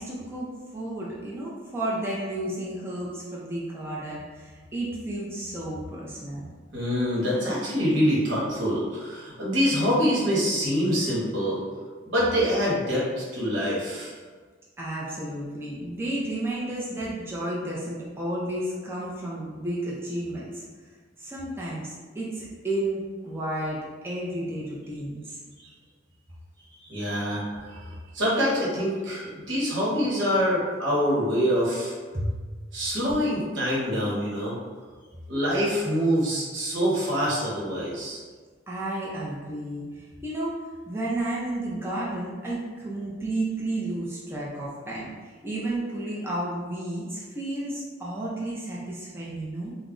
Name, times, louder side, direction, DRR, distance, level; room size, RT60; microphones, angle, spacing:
voice 1, 0.0-6.5 14.8-20.6 21.2-25.4 32.1-32.3 38.7-40.6 40.9-49.7, right 1 dB, 15° right, -6 dB, 0.4 m, -32 dB
voice 2, 6.7-11.6 12.0-14.1 26.8-31.9 32.7-34.6 35.3-38.2, equal, 80° right, -6 dB, 1.0 m, -25 dB
2.3 x 2.0 x 3.6 m, 1.5 s
head